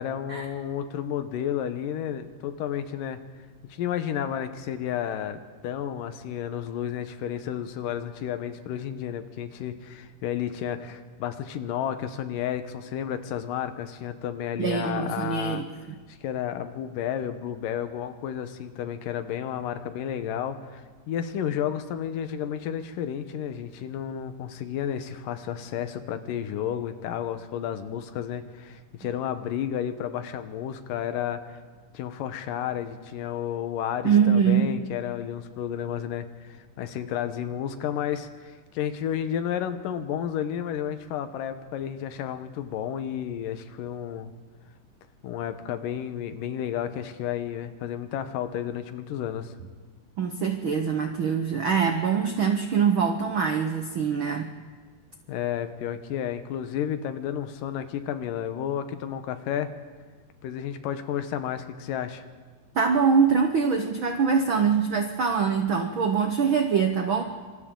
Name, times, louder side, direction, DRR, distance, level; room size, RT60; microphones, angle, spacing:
voice 1, 0.0-3.2 3.7-15.6 16.1-31.6 31.9-44.3 45.2-49.5 55.3-59.7 60.4-62.2, left 9 dB, 80° left, 9 dB, 2.6 m, -32 dB
voice 2, 14.6-15.6 34.0-34.7 50.2-54.5 62.7-67.2, right 6 dB, 70° right, 4 dB, 1.2 m, -23 dB
27.5 x 25.0 x 3.8 m, 1.4 s
omnidirectional pair, 3.9 m